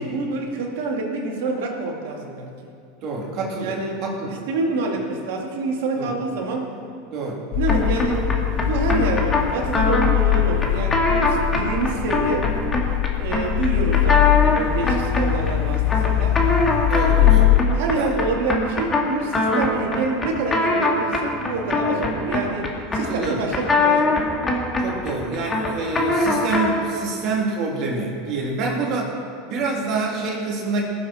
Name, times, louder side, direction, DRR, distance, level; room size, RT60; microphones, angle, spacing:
voice 1, 0.0-2.5 3.6-4.0 4.3-6.7 7.5-12.5 13.2-16.4 17.2-24.1, right 3 dB, 70° right, 0 dB, 2.4 m, -27 dB
voice 2, 3.0-4.3 6.0-6.1 7.1-7.4 11.5-11.6 16.9-17.5 17.9-18.1 22.9-23.5 24.8-29.1 29.4-30.8, right 3 dB, 50° right, -1 dB, 2.9 m, -27 dB
sound 1, 7.5-17.6, left 14 dB, 55° left, 0.5 m, -21 dB
sound 2, 7.7-26.9, left 2 dB, 20° left, 2.2 m, -23 dB
20.0 x 7.6 x 4.4 m, 2.3 s
hypercardioid pair, 90°, 0 cm